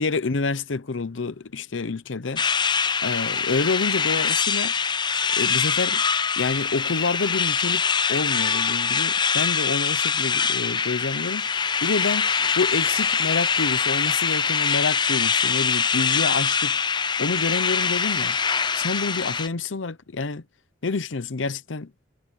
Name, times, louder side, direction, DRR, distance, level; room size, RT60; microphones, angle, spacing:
voice 1, 0.0-2.4 3.0-4.7 5.4-6.0 6.4-7.8 8.1-16.8 17.2-18.4 18.7-20.4 20.8-21.9, left 4 dB, 80° left, 0.8 m, -28 dB
sound 1, 2.4-19.5, left 6 dB, 25° left, 0.5 m, -23 dB
head